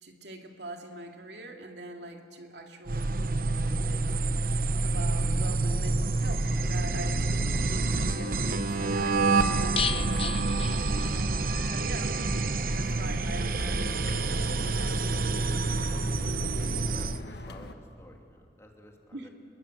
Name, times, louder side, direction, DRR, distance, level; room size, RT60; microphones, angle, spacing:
voice 1, 0.0-4.0 4.8-10.9 11.7-12.3 12.7-15.9 19.1-19.3, right 1 dB, 80° right, 2 dB, 2.5 m, -43 dB
sound 1, 2.9-17.2, right 3 dB, 55° right, 0.9 m, -28 dB
sound 2, 7.9-17.7, left 2 dB, 70° left, 1.4 m, -43 dB
sound 3, 9.8-11.5 11.8-11.9 12.2-12.3, left 8 dB, 30° left, 0.5 m, -34 dB
voice 2, 17.0-19.3, equal, 15° left, 1 dB, 2.8 m, -53 dB
27.5 x 21.5 x 7.8 m, 2.4 s
head